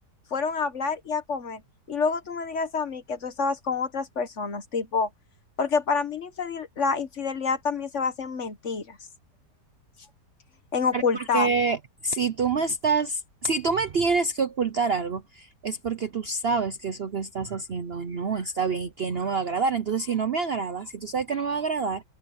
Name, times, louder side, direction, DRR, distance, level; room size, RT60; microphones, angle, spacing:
voice 1, 0.3-1.6 1.9-5.1 5.6-9.0 10.7-11.5, left 5 dB, 50° left, 1.4 m, -27 dB
voice 2, 10.9-11.8 12.0-22.0, right 4 dB, 50° right, 0.8 m, -27 dB
omnidirectional pair, 1.8 m